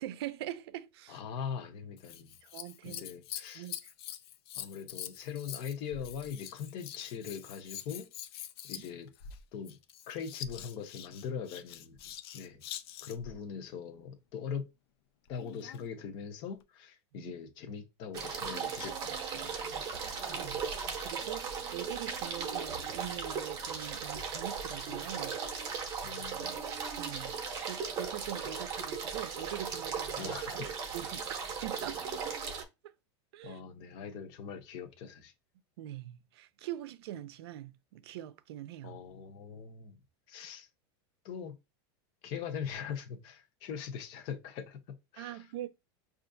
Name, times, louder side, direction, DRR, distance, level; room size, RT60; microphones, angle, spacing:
voice 1, 0.0-1.2 2.4-3.0 3.5-3.9 8.7-8.9 17.1-17.3 20.3-20.6 21.0-25.4 27.0-32.0 32.6-32.9 33.3-33.6 35.8-39.0 45.2-45.7, right 13 dB, 70° right, 0.5 m, -43 dB
voice 2, 1.1-2.4 2.8-3.7 4.6-8.1 8.6-9.1 9.5-9.8 10.1-12.6 13.0-14.7 15.3-19.9 26.0-26.6 30.2-30.7 33.4-35.3 38.8-40.0 40.3-40.7 41.2-41.6 42.2-45.4, left 7 dB, 35° left, 0.7 m, -41 dB
Scissors, 2.0-13.3 15.3-15.9 16.6-16.7, left 10 dB, 65° left, 0.5 m, -45 dB
sound 1, 18.1-32.6, right 6 dB, 25° right, 0.7 m, -37 dB
5.7 x 2.5 x 2.6 m
supercardioid pair, 170°, 14 cm